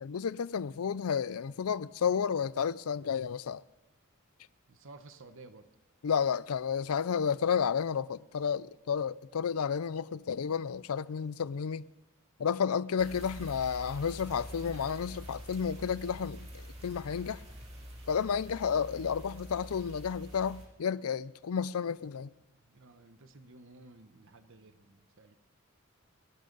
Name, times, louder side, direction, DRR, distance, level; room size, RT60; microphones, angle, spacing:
voice 1, 0.0-3.6 6.0-11.9 12.4-17.4 18.1-22.3, left 7 dB, 75° left, 0.5 m, -31 dB
voice 2, 4.7-5.7 22.4-25.4, right 2 dB, 60° right, 1.0 m, -54 dB
sound 1, 13.0-20.7, equal, 30° right, 3.0 m, -46 dB
29.5 x 11.5 x 4.0 m
head